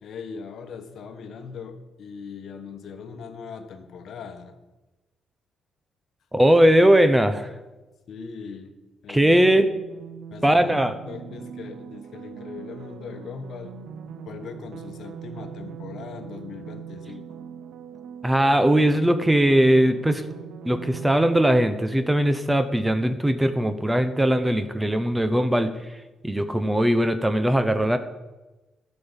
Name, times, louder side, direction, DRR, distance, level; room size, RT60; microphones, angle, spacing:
voice 1, 0.0-4.5 8.1-8.7 9.0-9.6 10.3-10.8 11.1-13.8 14.2-17.3, left 6 dB, 65° left, 8 dB, 1.2 m, -40 dB
voice 2, 6.3-7.5 9.1-9.7 10.4-10.9 18.2-20.2 20.6-25.7 26.2-28.0, right 1 dB, 10° right, 10 dB, 0.8 m, -20 dB
sound 1, 9.6-21.6, right 7 dB, 75° right, 0.7 m, -41 dB
11.5 x 5.3 x 7.3 m, 1.1 s
cardioid pair, 90°, 0 cm